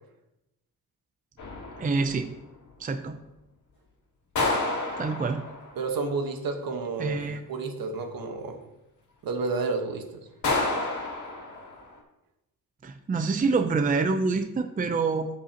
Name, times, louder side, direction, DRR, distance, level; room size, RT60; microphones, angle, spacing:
sound 1, 1.4-2.3 4.4-5.9 10.4-12.0, left 2 dB, 50° left, 2.3 m, -30 dB
voice 1, 1.8-2.3 2.8-3.2 5.0-5.4 7.0-7.5 12.8-15.3, right 4 dB, 20° right, 7 dB, 0.6 m, -26 dB
voice 2, 5.7-7.2 7.5-8.6 9.2-10.3, right 3 dB, 65° right, 5 dB, 1.4 m, -30 dB
13.5 x 5.7 x 2.9 m, 0.93 s
cardioid pair, 105°, 38 cm